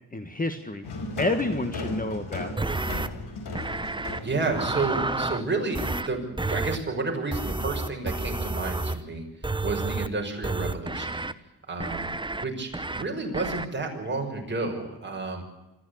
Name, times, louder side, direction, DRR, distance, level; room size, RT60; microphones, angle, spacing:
voice 1, 0.1-0.9 1.2-2.5, left 2 dB, 20° left, 8 dB, 1.5 m, -29 dB
sound 1, 0.8-5.8, left 2 dB, 75° left, 5.1 m, -36 dB
sound 2, 2.6-3.1 3.6-4.2 4.5-5.4 5.7-6.1 6.4-6.8 7.3-9.0 9.4-10.1 10.4-11.3 11.8-12.4 12.7-13.0 13.3-13.7, right 2 dB, 10° right, 0.9 m, -30 dB
voice 2, 3.6-11.2 11.7-15.4, right 3 dB, 30° right, 2 dB, 5.9 m, -31 dB
25.5 x 13.5 x 8.5 m, 1.1 s
cardioid pair, 100°, 39 cm